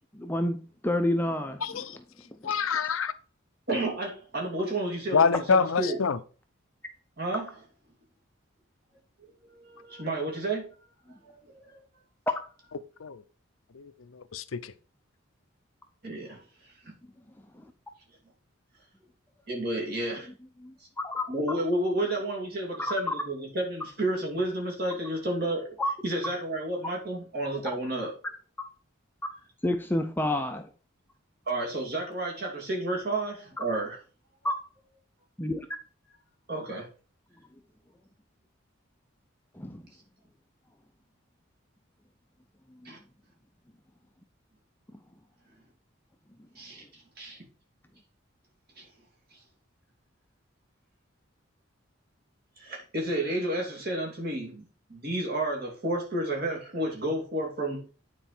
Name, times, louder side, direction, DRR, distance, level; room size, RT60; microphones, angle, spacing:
voice 1, 0.1-0.6 0.8-1.6 2.4-2.5 20.6-20.7 21.0-21.2 22.8-22.9 25.8-25.9 29.6-30.7 34.4-34.5 35.4-35.7 39.6-39.8, left 1 dB, 10° left, 0.5 m, -28 dB
voice 2, 1.6-2.0 2.4-3.1 5.1-6.2 13.0-13.2 13.7-14.7, left 5 dB, 85° left, 0.6 m, -26 dB
voice 3, 3.7-6.0 7.2-7.6 9.5-10.7 11.5-11.8 16.0-16.4 19.5-20.3 21.3-25.8 26.0-28.1 31.5-34.0 36.5-36.9 42.8-43.0 46.6-47.4 48.8-48.9 52.6-54.6 54.9-57.8, right 1 dB, 50° right, 2.8 m, -31 dB
9.2 x 4.5 x 4.4 m
head